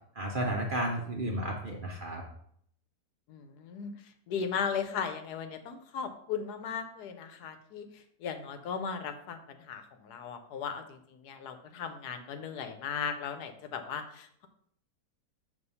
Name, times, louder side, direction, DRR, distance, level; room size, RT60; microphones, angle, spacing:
voice 1, 0.2-2.2, right 1 dB, 50° right, -1 dB, 0.6 m, -32 dB
voice 2, 3.3-14.5, left 6 dB, 85° left, 8 dB, 1.2 m, -37 dB
6.2 x 2.8 x 5.4 m, 0.67 s
omnidirectional pair, 1.7 m